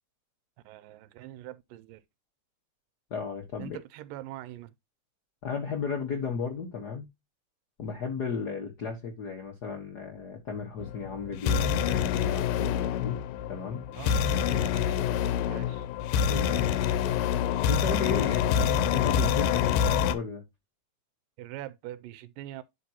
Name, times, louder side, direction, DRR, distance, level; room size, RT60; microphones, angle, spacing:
voice 1, 0.7-2.0 3.6-4.7 14.0-15.9 21.4-22.6, right 14 dB, 85° right, 2.3 m, -43 dB
voice 2, 3.1-3.8 5.4-7.1 7.8-13.2 13.5-13.8 16.3-16.6 17.7-20.4, left 5 dB, 70° left, 0.9 m, -35 dB
Inception (kinda) build up, 10.8-20.2, left 8 dB, 90° left, 2.4 m, -26 dB
11.0 x 4.4 x 2.9 m
omnidirectional pair, 3.8 m